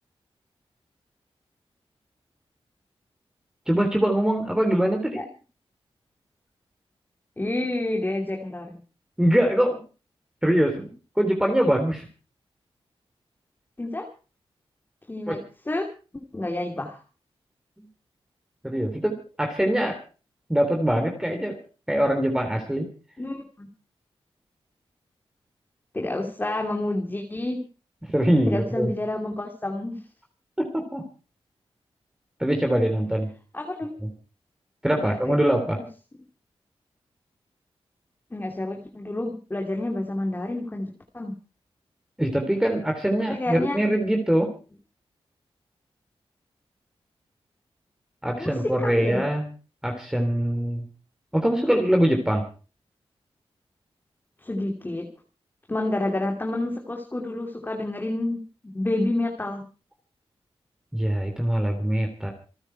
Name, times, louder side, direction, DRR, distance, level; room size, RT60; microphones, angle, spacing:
voice 1, 3.7-5.2 9.2-9.8 10.4-12.1 15.3-15.4 18.6-20.0 20.5-21.6 21.9-22.9 28.1-28.9 30.6-31.0 32.4-33.3 34.0-34.1 34.8-35.8 42.2-44.5 48.2-49.4 49.8-50.9 51.3-52.5 60.9-62.3, equal, 5° right, 3 dB, 3.3 m, -23 dB
voice 2, 7.4-8.8 13.8-14.1 15.1-17.0 23.2-23.7 25.9-27.6 28.5-30.0 33.5-33.9 35.0-35.4 38.3-41.3 43.2-43.8 48.4-49.2 54.4-55.1 55.7-59.7, left 2 dB, 20° left, 2 dB, 2.8 m, -29 dB
27.5 x 9.7 x 4.7 m, 0.36 s
wide cardioid pair, 100°, 10 cm